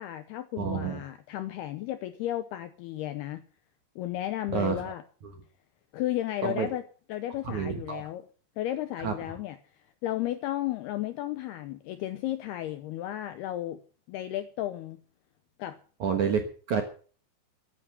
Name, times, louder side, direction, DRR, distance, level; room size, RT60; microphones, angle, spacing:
voice 1, 0.0-3.4 4.0-5.0 5.9-6.8 7.1-8.2 8.6-9.6 10.0-13.8 14.1-15.0 15.6-15.8, left 13 dB, 80° left, 11 dB, 2.3 m, -33 dB
voice 2, 0.6-1.0 4.5-4.8 6.4-6.7 7.4-8.0 9.0-9.1 16.0-16.8, right 6 dB, 65° right, 5 dB, 2.0 m, -29 dB
14.5 x 11.0 x 6.6 m, 0.41 s
omnidirectional pair, 5.5 m